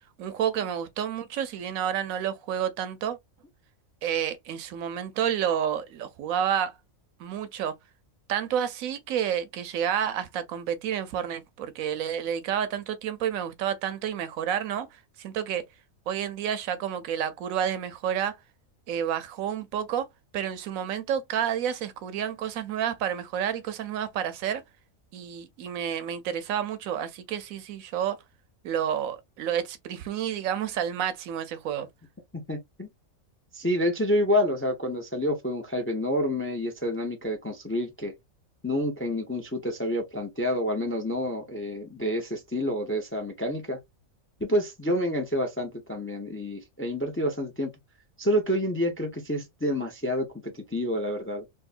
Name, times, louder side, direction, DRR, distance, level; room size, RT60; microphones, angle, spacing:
voice 1, 0.2-3.2 4.0-6.8 7.2-7.7 8.3-15.6 16.1-18.3 18.9-20.1 20.3-24.6 25.1-28.2 28.6-31.9, right 9 dB, 80° right, 1.0 m, -30 dB
voice 2, 32.3-32.9 33.5-38.1 38.6-43.8 44.4-47.7 48.2-51.5, equal, 15° left, 0.4 m, -28 dB
3.6 x 2.6 x 2.4 m
omnidirectional pair, 1.4 m